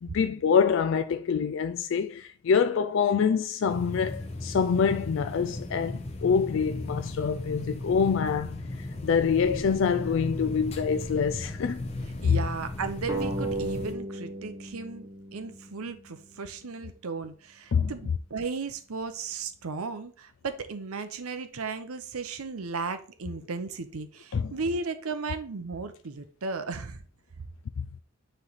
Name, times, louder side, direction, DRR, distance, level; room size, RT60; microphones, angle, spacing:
voice 1, 0.0-11.9 12.2-12.5 17.7-17.9 24.3-24.5 27.8-27.9, left 6 dB, 60° left, 0.3 m, -26 dB
sound 1, 3.7-13.9, left 2 dB, 30° left, 0.8 m, -36 dB
voice 2, 12.2-15.1 15.3-27.0, right 4 dB, 80° right, 0.7 m, -35 dB
sound 2, 13.1-16.3, right 2 dB, 15° right, 0.9 m, -35 dB
9.7 x 3.3 x 4.0 m
head